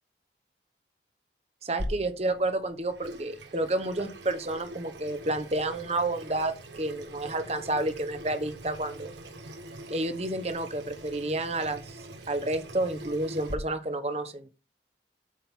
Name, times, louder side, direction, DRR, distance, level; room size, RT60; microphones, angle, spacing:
voice 1, 1.6-9.1 9.9-12.0 12.3-14.5, right 2 dB, 35° right, 9 dB, 1.1 m, -30 dB
Water tap faucet / Sink (filling or washing), 1.8-13.5, right 1 dB, 85° right, 1.5 m, -42 dB
8.5 x 3.8 x 6.1 m, 0.30 s
head